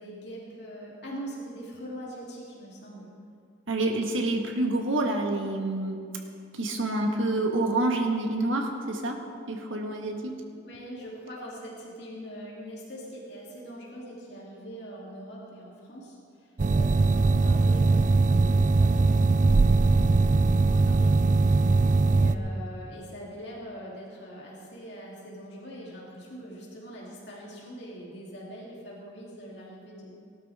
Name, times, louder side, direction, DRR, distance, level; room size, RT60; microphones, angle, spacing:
voice 1, 0.0-3.1 10.6-21.2 22.0-30.2, equal, 60° left, -5 dB, 3.0 m, -42 dB
voice 2, 3.7-6.0 6.5-9.2 9.5-10.3, right 2 dB, 85° right, 2 dB, 1.6 m, -27 dB
sound 1, 16.6-22.4, right 3 dB, 40° right, 0.4 m, -21 dB
18.5 x 12.5 x 3.6 m, 2.3 s
head